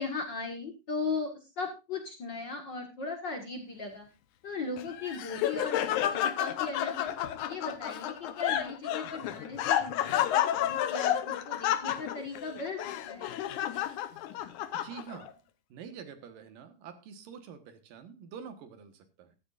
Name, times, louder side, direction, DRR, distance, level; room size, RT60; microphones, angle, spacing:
voice 1, 0.0-4.1 4.4-7.1 7.5-13.3, left 4 dB, 40° left, 1.8 m, -38 dB
Laughter, 4.8-15.3, left 11 dB, 70° left, 2.1 m, -31 dB
voice 2, 14.7-15.4 15.7-19.4, right 7 dB, 75° right, 3.1 m, -46 dB
14.5 x 12.5 x 2.5 m
omnidirectional pair, 4.0 m